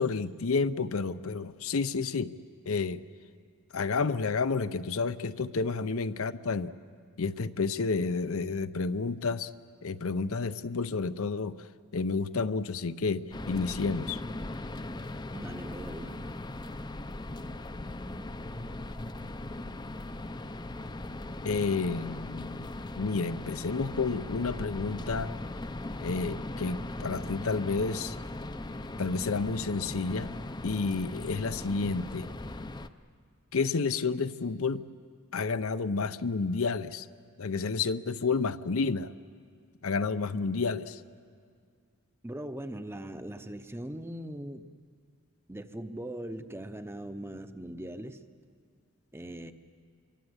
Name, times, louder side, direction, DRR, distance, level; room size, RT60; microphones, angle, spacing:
voice 1, 0.0-2.3 2.7-3.0 3.7-6.7 7.2-9.5 9.8-11.5 11.9-14.2 21.4-22.6 23.0-25.3 26.0-28.2 29.0-30.3 30.6-32.3 33.5-34.8 35.3-37.1 37.4-39.1 39.8-41.0, left 4 dB, 70° left, 13 dB, 0.7 m, -30 dB
sound 1, 13.3-32.9, left 2 dB, 20° left, 0.6 m, -39 dB
voice 2, 15.3-16.2 42.2-44.7 45.5-48.2 49.1-49.5, right 1 dB, 10° right, 10 dB, 0.8 m, -40 dB
26.0 x 23.5 x 8.0 m, 2.1 s
head